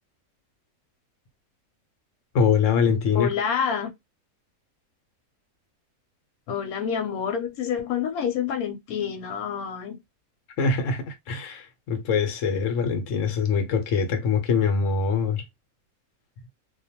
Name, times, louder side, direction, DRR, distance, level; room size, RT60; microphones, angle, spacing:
voice 1, 2.3-3.3 10.6-15.4, left 5 dB, 65° left, 1.0 m, -23 dB
voice 2, 3.1-3.9 6.5-10.0, left 7 dB, 85° left, 1.1 m, -27 dB
2.5 x 2.2 x 2.7 m
omnidirectional pair, 1.5 m